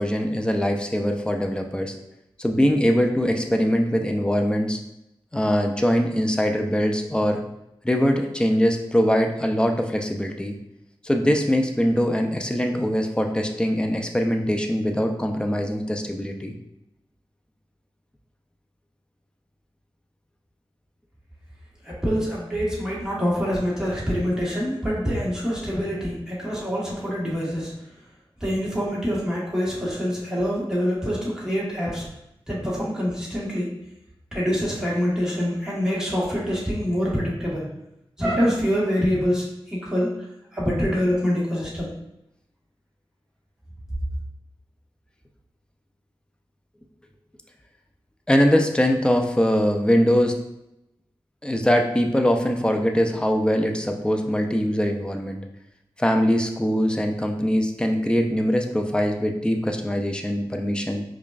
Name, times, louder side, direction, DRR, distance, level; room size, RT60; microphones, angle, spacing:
voice 1, 0.0-2.0 2.4-4.8 5.3-7.4 7.8-10.6 11.0-16.6 48.3-50.4 51.4-55.4 56.0-61.0, equal, 10° left, 3 dB, 0.5 m, -22 dB
voice 2, 21.8-27.7 28.4-32.1 32.5-33.7 34.3-37.7 38.2-40.3 40.5-41.9, equal, 5° right, -6 dB, 1.5 m, -25 dB
4.9 x 2.3 x 2.5 m, 0.85 s
wide cardioid pair, 55°, 10 cm